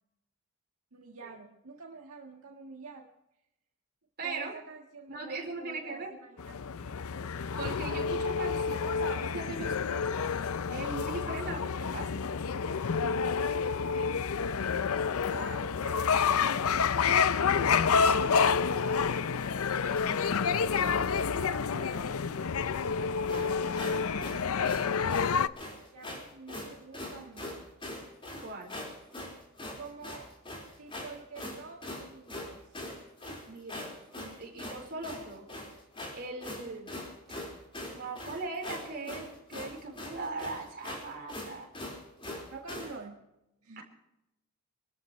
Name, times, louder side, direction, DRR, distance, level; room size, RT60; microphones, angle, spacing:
voice 1, 0.9-3.1 4.2-6.4 15.3-20.3 20.7-24.2 24.6-27.7 29.8-30.3 30.8-32.8 38.0-38.1 42.5-43.2 43.6-43.8, right 4 dB, 75° right, 0 dB, 1.7 m, -48 dB
voice 2, 4.2-4.5 5.1-6.1 7.3-10.2 10.7-12.2 28.4-28.7 33.5-35.5 36.1-37.0 37.9-41.7 43.8-43.9, right 3 dB, 45° right, 1 dB, 4.5 m, -40 dB
sound 1, 6.4-25.5, left 6 dB, 70° left, 0.6 m, -29 dB
sound 2, 23.2-43.0, left 1 dB, 25° left, 4.6 m, -42 dB
26.5 x 13.5 x 3.2 m, 0.89 s
head